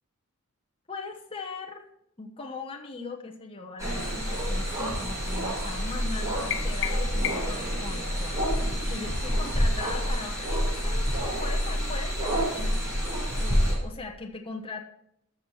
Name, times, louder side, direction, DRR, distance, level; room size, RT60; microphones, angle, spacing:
voice 1, 0.9-1.9 2.2-12.8 13.4-14.8, left 4 dB, 25° left, 1 dB, 1.1 m, -40 dB
sound 1, 3.8-13.7, equal, 15° right, 5.6 m, -28 dB
sound 2, 6.5-7.7, left 9 dB, 60° left, 0.8 m, -33 dB
14.0 x 6.5 x 5.5 m, 0.77 s
head